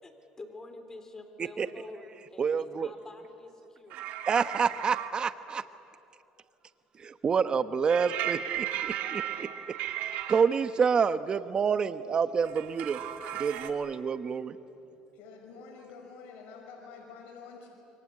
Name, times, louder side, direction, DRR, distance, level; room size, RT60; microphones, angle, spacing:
voice 1, 0.0-4.0, left 2 dB, 20° left, 7 dB, 3.7 m, -47 dB
voice 2, 2.4-2.9 4.3-5.6 7.0-9.5 10.3-13.0 13.4-14.6, right 6 dB, 35° right, 12 dB, 1.1 m, -28 dB
sound 1, 3.9-5.1 7.9-10.4 12.4-13.7, right 12 dB, 75° right, 2.0 m, -35 dB
voice 3, 14.9-17.7, left 5 dB, 75° left, 1 dB, 5.4 m, -48 dB
27.5 x 23.5 x 8.6 m, 2.7 s
cardioid pair, 105°, 3 cm